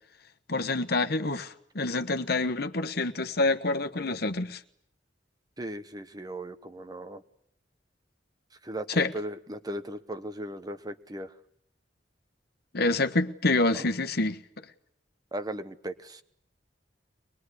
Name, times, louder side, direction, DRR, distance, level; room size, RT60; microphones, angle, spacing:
voice 1, 0.5-4.6 8.9-9.1 12.7-14.4, left 2 dB, 60° left, 1.3 m, -27 dB
voice 2, 5.6-7.2 8.6-11.3 13.7-13.9 15.3-16.2, right 1 dB, 20° right, 1.1 m, -37 dB
23.0 x 21.0 x 9.9 m
head